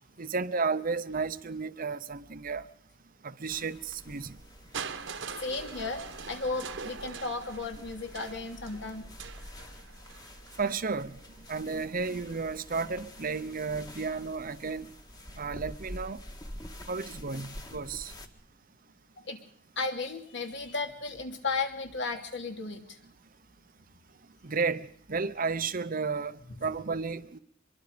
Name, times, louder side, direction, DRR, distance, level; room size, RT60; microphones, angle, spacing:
voice 1, 0.2-2.7 3.2-4.4 10.6-11.2 11.5-14.9 15.4-16.2 16.9-18.1 24.4-27.4, right 4 dB, 45° right, 0.8 m, -33 dB
sound 1, 3.5-18.3, left 1 dB, 20° left, 1.8 m, -48 dB
Crushing, 4.7-10.7 11.6-11.7, right 5 dB, 65° right, 1.3 m, -43 dB
voice 2, 5.4-9.1 19.3-19.4 19.8-23.0, left 3 dB, 65° left, 2.9 m, -34 dB
24.5 x 22.5 x 5.1 m
head